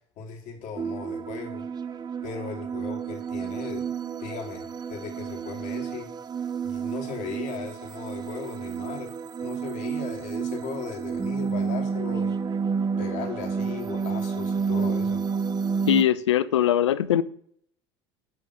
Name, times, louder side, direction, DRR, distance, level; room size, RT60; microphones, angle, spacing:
voice 1, 0.2-1.7 2.2-3.9 4.2-6.1 6.6-9.1 9.4-12.3 13.0-15.2, left 6 dB, 60° left, 2.3 m, -37 dB
sound 1, 0.8-16.0, right 5 dB, 30° right, 0.7 m, -30 dB
voice 2, 15.9-17.2, left 11 dB, 90° left, 0.5 m, -21 dB
10.5 x 3.6 x 6.4 m
hypercardioid pair, 80°, 14 cm